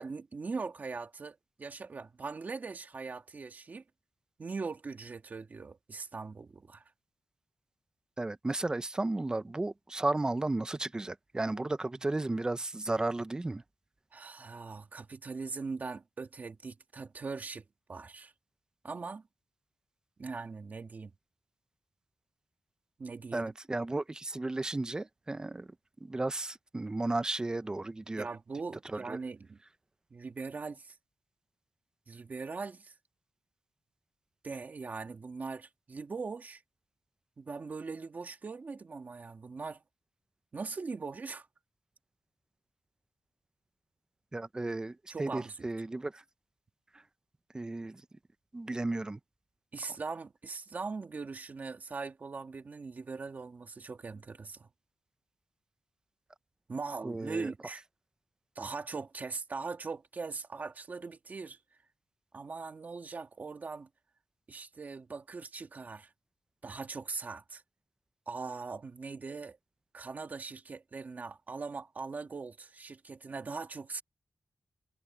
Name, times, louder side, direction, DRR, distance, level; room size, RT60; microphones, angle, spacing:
voice 1, 0.0-3.8 4.4-6.8 14.1-17.6 17.9-18.3 18.8-19.2 20.2-21.1 23.0-23.5 28.2-29.6 30.1-31.0 32.1-32.9 34.4-36.6 37.4-39.8 40.5-41.5 45.1-45.7 49.7-54.7 56.7-57.8 58.6-61.6 62.3-63.9 64.5-66.1 66.6-67.6 68.3-69.6 69.9-74.0, right 4 dB, 40° right, 2.1 m, -41 dB
voice 2, 8.2-13.6 23.3-25.7 26.0-28.3 28.9-29.2 44.3-46.2 47.5-48.0 48.5-49.2 57.0-57.5, right 2 dB, 15° right, 0.5 m, -34 dB
wide cardioid pair, 170°, 4 cm